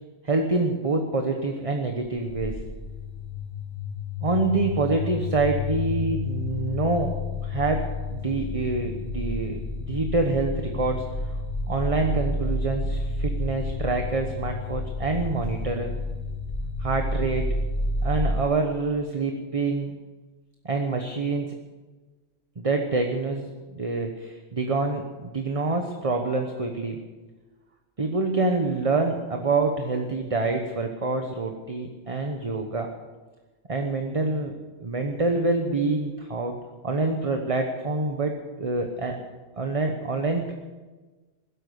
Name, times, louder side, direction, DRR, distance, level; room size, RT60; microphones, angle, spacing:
voice 1, 0.2-2.6 4.2-7.2 7.4-11.4 11.7-15.9 16.8-17.5 18.0-20.0 20.6-21.5 22.6-27.0 28.0-32.9 33.7-34.5 34.8-36.6 36.8-39.2 39.6-40.5, right 3 dB, 30° right, 4 dB, 1.1 m, -26 dB
sound 1, 2.0-18.4, left 2 dB, 80° left, 3.9 m, -30 dB
16.5 x 12.5 x 6.5 m, 1.3 s
omnidirectional pair, 1.3 m